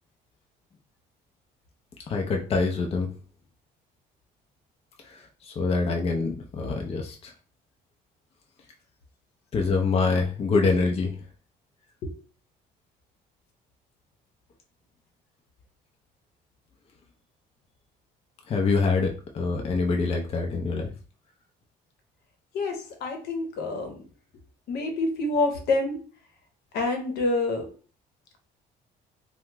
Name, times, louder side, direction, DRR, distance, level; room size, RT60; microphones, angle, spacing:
voice 1, 2.1-3.1 5.0-7.3 9.5-11.1 18.5-20.9, left 4 dB, 35° left, 2 dB, 0.5 m, -25 dB
voice 2, 22.5-24.0 24.7-26.0 26.7-27.6, left 2 dB, 75° left, 4 dB, 0.9 m, -27 dB
2.9 x 2.1 x 3.4 m, 0.39 s
cardioid pair, 110°, 17 cm